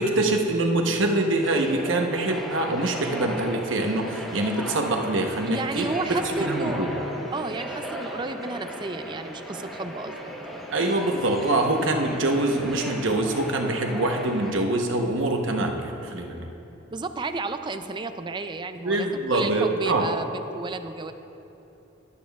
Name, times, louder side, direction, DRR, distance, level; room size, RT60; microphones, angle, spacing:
voice 1, 0.0-6.9 10.7-16.4 18.8-20.1, right 2 dB, 75° right, 3 dB, 0.9 m, -24 dB
sound 1, 1.4-14.5, equal, ahead, 0.9 m, -36 dB
voice 2, 5.4-6.9 7.3-10.2 16.9-21.1, right 3 dB, 25° right, 9 dB, 0.4 m, -32 dB
19.5 x 8.4 x 2.3 m, 2.9 s
head